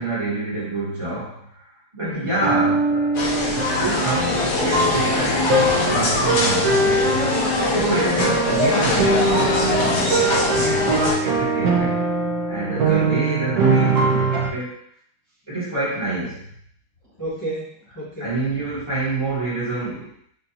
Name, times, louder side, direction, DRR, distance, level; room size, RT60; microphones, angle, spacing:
voice 1, 0.0-1.7 1.9-3.2 3.8-6.9 7.6-10.0 10.5-12.0 12.5-14.8 15.5-16.5 18.2-20.1, right 2 dB, 20° right, -9 dB, 1.1 m, -27 dB
voice 2, 2.0-2.3 7.7-8.2 12.7-13.2 17.2-18.3, right 1 dB, 25° left, -9 dB, 0.4 m, -31 dB
sound 1, 2.3-14.5, right 3 dB, 60° right, 1.1 m, -22 dB
sound 2, 3.1-11.1, left 2 dB, 60° left, 1.3 m, -22 dB
5.3 x 2.5 x 2.8 m, 0.65 s
omnidirectional pair, 2.2 m